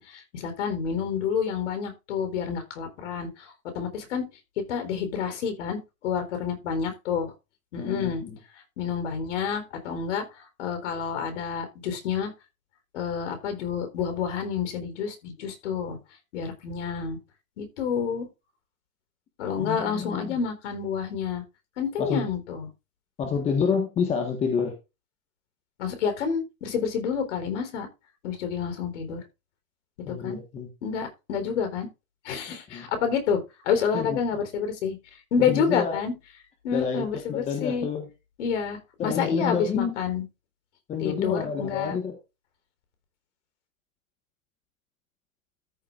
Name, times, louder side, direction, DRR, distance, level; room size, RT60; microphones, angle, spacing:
voice 1, 0.0-3.5 3.7-4.2 4.7-7.3 7.7-8.2 8.8-10.3 10.6-12.3 12.9-16.0 16.3-17.2 17.6-18.3 19.4-21.4 21.8-22.7 25.8-27.9 28.2-29.2 30.1-30.4 30.8-31.9 32.2-35.0 35.3-36.1 36.6-37.9 38.4-40.2 41.0-42.0, left 6 dB, 50° left, 7 dB, 4.0 m, -29 dB
voice 2, 7.8-8.4 19.6-20.4 22.0-22.3 23.2-24.7 30.0-30.7 32.5-32.9 33.9-34.2 35.4-36.0 36.7-38.1 39.0-39.9 40.9-42.2, left 6 dB, 15° left, 4 dB, 1.5 m, -28 dB
13.5 x 7.4 x 2.5 m, 0.26 s
hypercardioid pair, 160°, 44 cm